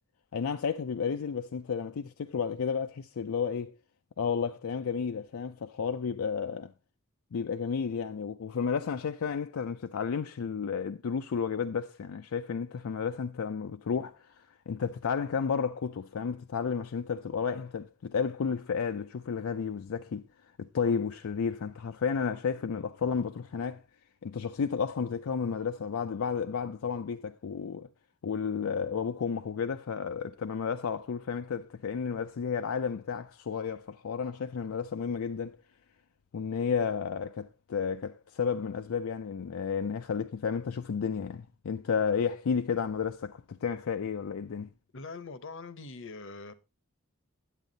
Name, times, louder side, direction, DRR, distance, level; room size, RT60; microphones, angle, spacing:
voice 1, 0.3-3.7 4.2-6.7 7.3-20.2 20.6-23.8 24.2-27.9 28.2-35.6 36.3-44.7, left 6 dB, 80° left, 0.4 m, -32 dB
voice 2, 44.9-46.5, left 3 dB, 60° left, 0.8 m, -43 dB
9.3 x 8.1 x 3.9 m
head